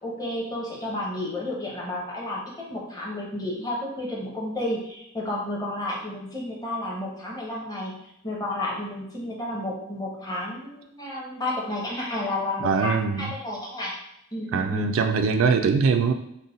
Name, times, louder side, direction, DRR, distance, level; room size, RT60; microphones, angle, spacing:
voice 1, 0.0-8.0 8.2-14.0 14.3-14.9, left 1 dB, 20° left, -3 dB, 0.8 m, -31 dB
voice 2, 12.6-13.3 14.5-16.1, right 5 dB, 75° right, 6 dB, 0.3 m, -22 dB
3.9 x 2.1 x 3.8 m, 0.78 s
head